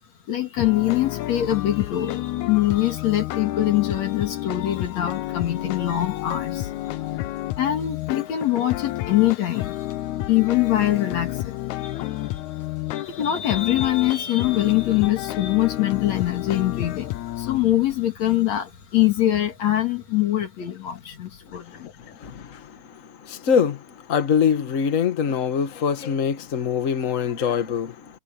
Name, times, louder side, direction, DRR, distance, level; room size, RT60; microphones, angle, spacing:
voice 1, 0.3-7.2 7.5-10.0 10.3-12.5 12.9-21.9, left 13 dB, 65° left, 3.1 m, -23 dB
sound 1, 0.6-17.6, left 15 dB, 80° left, 2.1 m, -30 dB
voice 2, 21.5-27.9, left 7 dB, 40° left, 1.2 m, -24 dB
omnidirectional pair, 3.4 m